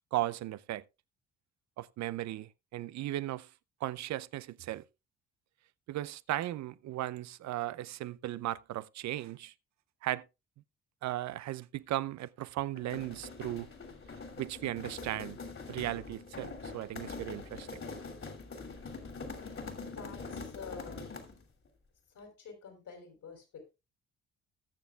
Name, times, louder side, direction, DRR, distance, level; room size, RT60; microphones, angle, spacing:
voice 1, 0.1-0.8 1.8-3.5 3.8-4.8 5.9-9.5 10.0-10.2 11.0-13.7 14.4-15.4 15.7-17.8, right 14 dB, 60° right, 0.6 m, -36 dB
sound 1, 12.7-21.4, left 4 dB, 40° left, 2.8 m, -44 dB
voice 2, 19.9-21.1 22.1-23.7, left 5 dB, 65° left, 4.5 m, -48 dB
20.0 x 6.9 x 2.3 m
hypercardioid pair, 50°, 32 cm